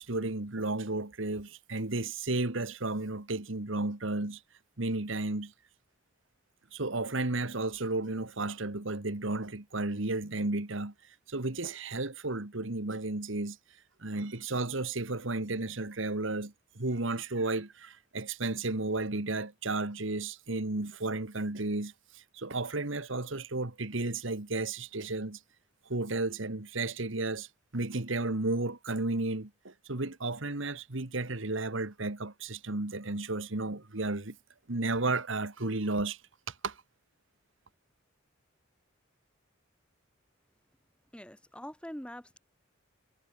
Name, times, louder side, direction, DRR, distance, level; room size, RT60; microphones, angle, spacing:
voice 1, 0.0-4.4 4.8-5.5 6.7-13.6 14.0-25.4 25.9-27.5 27.7-34.4 34.7-36.2 36.5-36.8, right 2 dB, 65° right, 1.8 m, -33 dB
voice 2, 41.1-42.4, equal, 5° left, 3.4 m, -44 dB
head